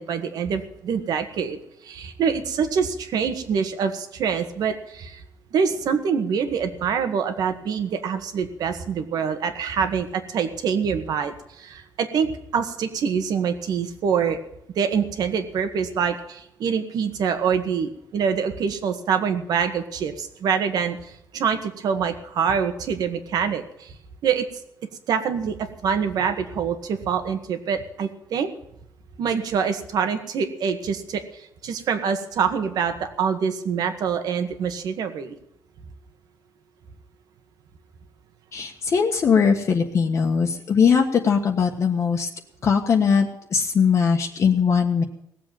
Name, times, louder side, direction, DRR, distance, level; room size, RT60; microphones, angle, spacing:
voice 1, 0.0-5.2 5.5-14.4 14.8-23.9 24.2-24.5 25.1-28.5 29.2-35.3, right 6 dB, 70° right, 8 dB, 1.8 m, -25 dB
voice 2, 38.5-42.3 42.6-45.0, left 6 dB, 45° left, 2 dB, 1.4 m, -20 dB
18.5 x 7.6 x 9.1 m, 0.77 s
cardioid pair, 135°, 7 cm